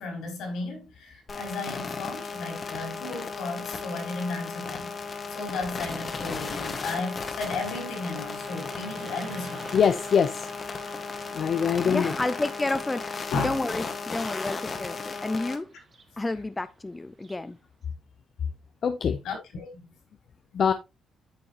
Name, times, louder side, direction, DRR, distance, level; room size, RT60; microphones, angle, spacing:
voice 1, 0.0-4.9 5.3-9.7 13.3-13.7 19.2-19.9, left 3 dB, 80° left, 4.6 m, -34 dB
sound 1, 1.3-15.6, left 4 dB, 40° left, 1.6 m, -35 dB
Car passing by, 2.2-17.5, right 4 dB, 35° right, 1.9 m, -50 dB
voice 2, 9.7-10.5 11.3-12.1 18.8-19.2 20.5-20.7, left 7 dB, 55° left, 0.7 m, -23 dB
voice 3, 11.9-15.7 16.2-17.6, left 2 dB, 15° left, 0.5 m, -31 dB
9.4 x 6.3 x 3.0 m
cardioid pair, 90°, 0 cm